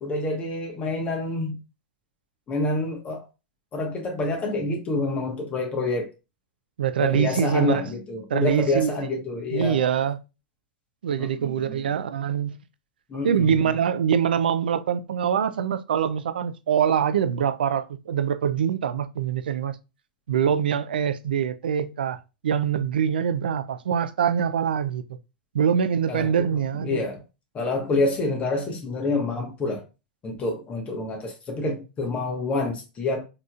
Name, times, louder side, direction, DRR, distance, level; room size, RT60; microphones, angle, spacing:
voice 1, 0.0-1.6 2.5-3.2 3.7-6.1 7.0-9.8 11.2-12.0 13.1-13.6 26.1-26.3 26.8-27.2 27.5-29.8 30.2-33.2, left 2 dB, 25° left, 1.2 m, -27 dB
voice 2, 6.8-7.8 8.3-9.0 9.5-10.2 11.0-12.6 13.2-19.8 20.3-25.0 25.5-27.0, right 8 dB, 75° right, 0.4 m, -24 dB
4.1 x 2.9 x 2.4 m
hypercardioid pair, 100°, 5 cm